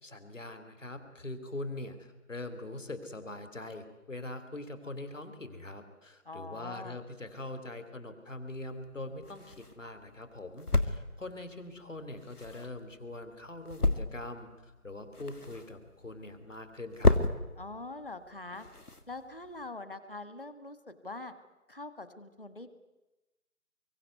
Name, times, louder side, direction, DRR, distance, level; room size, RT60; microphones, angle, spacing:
voice 1, 0.0-17.2, left 2 dB, 55° left, 9 dB, 3.6 m, -43 dB
voice 2, 6.3-7.0 17.6-18.7 19.1-21.3 21.7-22.7, left 2 dB, 35° left, 11 dB, 1.9 m, -43 dB
sound 1, 8.5-19.7, left 2 dB, 80° left, 2.5 m, -34 dB
25.0 x 23.5 x 9.5 m, 1.0 s
figure-of-eight pair, 170°, 45 cm